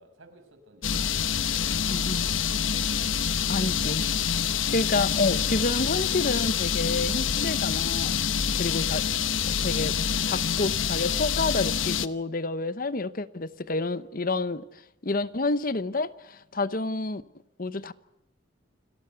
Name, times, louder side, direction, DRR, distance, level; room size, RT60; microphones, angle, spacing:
voice 1, 0.0-2.6 4.3-4.7 5.2-5.5, right 1 dB, 85° right, 5.8 m, -54 dB
sound 1, 0.8-12.1, left 7 dB, 75° left, 1.0 m, -26 dB
voice 2, 1.9-2.2 3.5-4.0 4.7-8.2 8.6-9.0 9.5-10.0 10.2-14.7 15.0-17.2 17.6-17.9, left 3 dB, 45° left, 0.9 m, -29 dB
29.5 x 19.0 x 8.2 m
head